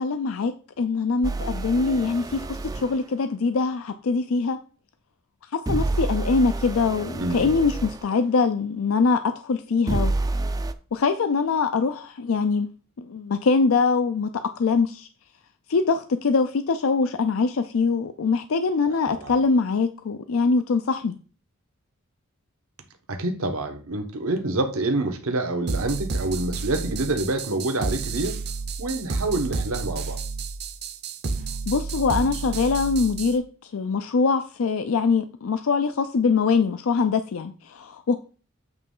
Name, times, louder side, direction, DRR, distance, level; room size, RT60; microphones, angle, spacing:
voice 1, 0.0-4.6 5.5-10.1 10.9-12.7 13.0-14.3 14.6-15.1 15.7-21.2 31.7-38.2, left 4 dB, 70° left, 10 dB, 0.5 m, -23 dB
sound 1, 1.2-2.9 5.7-8.0 9.9-10.7, right 2 dB, 15° right, 0.4 m, -28 dB
voice 2, 7.1-7.5 18.9-19.4 23.1-28.4 28.8-30.2, right 2 dB, 85° right, 6 dB, 1.1 m, -27 dB
sound 2, 25.7-33.4, right 4 dB, 50° right, 0.7 m, -30 dB
8.0 x 3.2 x 5.4 m, 0.38 s
head